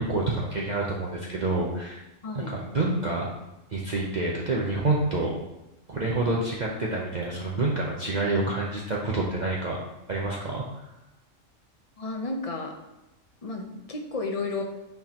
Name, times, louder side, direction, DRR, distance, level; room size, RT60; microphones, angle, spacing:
voice 1, 0.0-2.0 2.3-3.3 3.7-5.3 5.9-9.8 10.1-10.6, right 2 dB, 40° right, -3 dB, 0.8 m, -27 dB
voice 2, 2.2-2.6 12.0-12.8 13.4-14.6, left 3 dB, 30° left, 2 dB, 0.9 m, -32 dB
9.2 x 4.5 x 2.9 m, 0.95 s
omnidirectional pair, 1.3 m